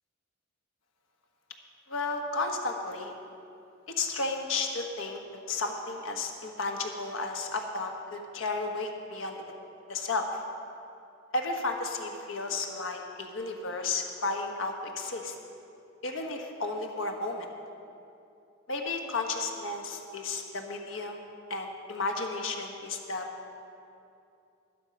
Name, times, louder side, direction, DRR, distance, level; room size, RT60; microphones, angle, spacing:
voice 1, 1.9-3.1 3.9-5.2 5.5-9.4 9.9-10.3 11.3-15.4 16.0-17.5 18.7-21.2 21.5-23.3, left 3 dB, 85° left, 3 dB, 1.3 m, -33 dB
12.0 x 11.5 x 5.2 m, 2.6 s
head